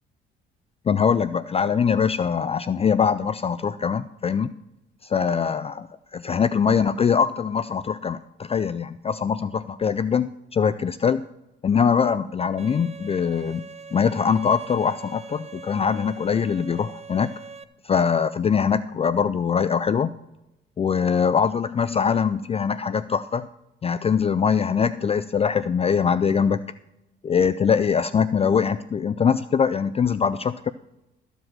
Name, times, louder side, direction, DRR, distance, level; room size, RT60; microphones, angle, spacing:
voice 1, 0.9-4.5 5.0-5.9 6.1-11.2 11.6-13.6 13.9-17.3 17.8-20.1 20.8-23.5 23.8-26.6 27.2-30.7, left 6 dB, 30° left, 14 dB, 0.4 m, -22 dB
Bowed string instrument, 12.6-17.6, right 4 dB, 35° right, 0.7 m, -42 dB
14.0 x 5.1 x 7.4 m, 0.90 s
cardioid pair, 90°, 20 cm